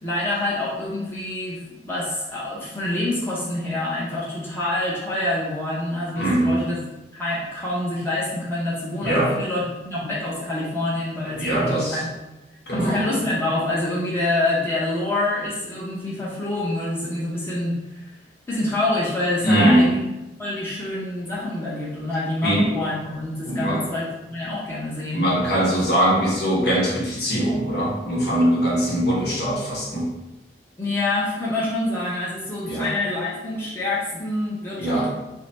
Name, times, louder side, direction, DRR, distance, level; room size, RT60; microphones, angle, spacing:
voice 1, 0.0-6.8 7.1-12.1 12.7-18.0 18.5-20.0 20.4-25.3 30.8-35.1, left 1 dB, 15° left, -8 dB, 0.8 m, -26 dB
voice 2, 6.1-6.7 9.0-9.3 11.3-12.0 12.7-13.0 19.4-20.0 22.4-22.7 23.4-23.8 25.1-30.1 32.7-32.9 34.8-35.1, right 1 dB, 60° left, -4 dB, 1.1 m, -21 dB
3.8 x 2.1 x 4.1 m, 1.0 s
head